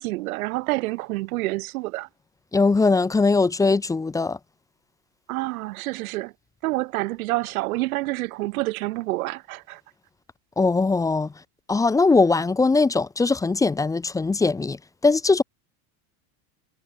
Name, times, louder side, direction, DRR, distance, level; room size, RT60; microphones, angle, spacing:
voice 1, 0.0-2.1 5.3-6.3 6.6-9.8, right 20 dB, 80° right, 2.1 m, -28 dB
voice 2, 2.5-4.4 10.6-11.3 11.7-14.8 15.0-15.4, left 3 dB, 10° left, 1.2 m, -20 dB
supercardioid pair, 170°, 43 cm